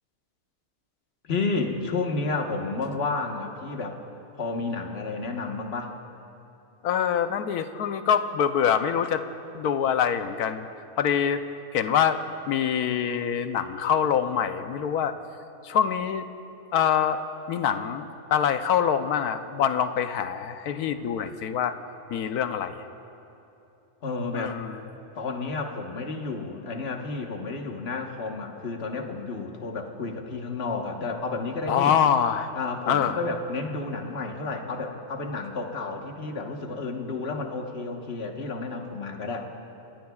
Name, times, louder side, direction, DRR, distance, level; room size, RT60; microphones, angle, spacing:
voice 1, 1.2-4.0 4.4-5.9 24.0-24.6 25.1-31.9 32.5-39.5, left 3 dB, 45° left, 2 dB, 1.4 m, -31 dB
voice 2, 6.8-9.2 9.5-10.7 11.0-11.4 11.7-12.2 12.5-15.1 15.6-16.3 16.7-17.2 17.5-21.7 22.1-22.8 24.3-24.8 31.7-32.5 32.9-33.2, left 8 dB, 80° left, 9 dB, 1.2 m, -25 dB
27.0 x 18.0 x 2.4 m, 2.9 s
omnidirectional pair, 1.6 m